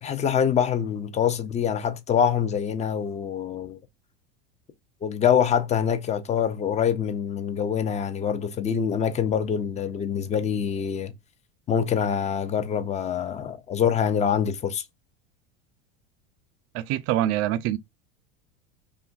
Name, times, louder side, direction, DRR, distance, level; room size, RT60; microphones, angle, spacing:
voice 1, 0.0-3.8 5.0-11.1 11.7-14.8, left 8 dB, 20° left, 0.4 m, -25 dB
voice 2, 16.7-17.8, right 13 dB, 50° right, 0.4 m, -25 dB
2.8 x 2.4 x 2.3 m
hypercardioid pair, 100°, 31 cm